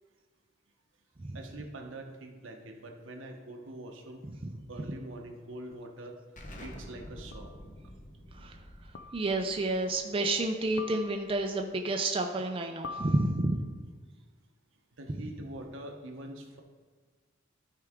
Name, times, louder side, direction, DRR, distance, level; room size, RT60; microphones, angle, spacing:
voice 1, 1.3-4.3 4.7-6.2 6.6-7.5 15.0-16.6, right 1 dB, 80° right, 3 dB, 1.0 m, -44 dB
sound 1, 5.7-5.8 7.3-7.7 8.9-9.5 10.8-11.5 12.8-13.8, left 3 dB, 60° left, 0.4 m, -44 dB
Explosion, 6.4-11.7, equal, 40° left, 1.0 m, -49 dB
voice 2, 9.1-13.6, right 2 dB, 30° right, 3 dB, 0.5 m, -30 dB
12.5 x 4.7 x 3.6 m, 1.5 s
head